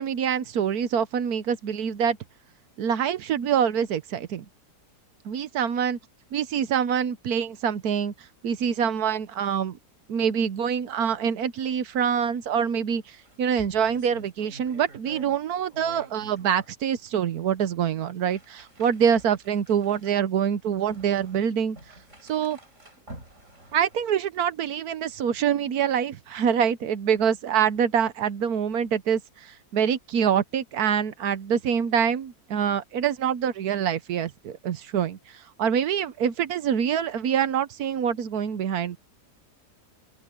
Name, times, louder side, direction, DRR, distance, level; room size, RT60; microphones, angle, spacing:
voice 1, 0.0-2.2 2.8-4.4 5.2-6.0 6.3-8.1 8.4-9.8 10.1-21.8 22.3-22.6 23.7-35.2 35.6-39.0, right 8 dB, 65° right, 1.3 m, -25 dB
sound 1, 11.9-12.2 12.5-12.6 13.0-15.4 15.7-16.7 17.4-17.5 18.2-24.2, right 2 dB, 45° right, 6.1 m, -49 dB
omnidirectional pair, 1.8 m